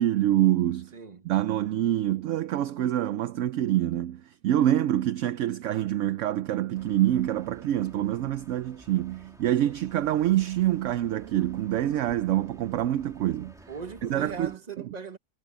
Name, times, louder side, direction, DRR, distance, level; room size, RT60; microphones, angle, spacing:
voice 1, 0.0-0.9 1.2-13.5 14.1-14.5, right 12 dB, 70° right, 0.8 m, -26 dB
voice 2, 0.9-1.3 13.7-15.2, right 5 dB, 30° right, 1.2 m, -39 dB
sound 1, 6.7-14.6, equal, ahead, 2.1 m, -53 dB
omnidirectional pair, 1.6 m